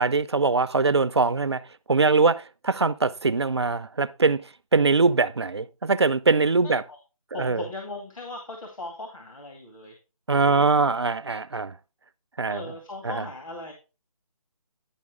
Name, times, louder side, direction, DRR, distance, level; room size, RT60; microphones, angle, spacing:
voice 1, 0.0-1.6 1.9-6.8 7.3-7.6 10.3-11.8 12.4-12.6 13.0-13.2, right 4 dB, 50° right, 0.5 m, -22 dB
voice 2, 6.6-7.0 7.3-9.9 12.5-13.7, left 2 dB, 65° left, 2.4 m, -38 dB
10.5 x 5.4 x 3.6 m
hypercardioid pair, 180°, 18 cm